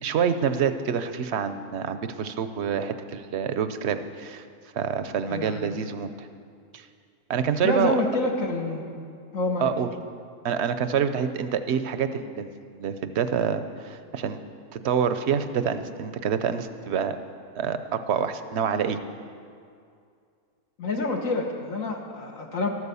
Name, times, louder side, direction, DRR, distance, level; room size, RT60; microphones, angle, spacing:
voice 1, 0.0-4.4 4.7-6.3 6.7-6.9 7.3-8.0 9.6-9.9 10.4-14.4 14.7-17.2 17.6-19.0, right 7 dB, 55° right, 10 dB, 0.9 m, -27 dB
voice 2, 5.3-5.7 7.6-8.9 9.3-9.7 20.8-22.7, left 2 dB, 65° left, 1 dB, 1.7 m, -27 dB
13.0 x 13.0 x 7.0 m, 2.3 s
omnidirectional pair, 1.6 m